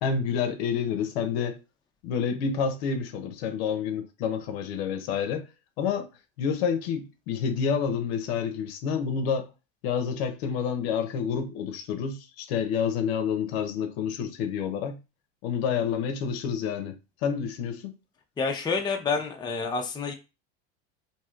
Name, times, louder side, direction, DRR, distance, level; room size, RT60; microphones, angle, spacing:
voice 1, 0.0-1.6 2.0-5.4 5.8-6.1 6.4-9.5 9.8-15.0 15.4-16.9 17.2-17.9, left 7 dB, 80° left, 0.6 m, -28 dB
voice 2, 18.4-20.1, left 4 dB, 15° left, 0.5 m, -28 dB
3.1 x 2.7 x 2.4 m
supercardioid pair, 125°, 31 cm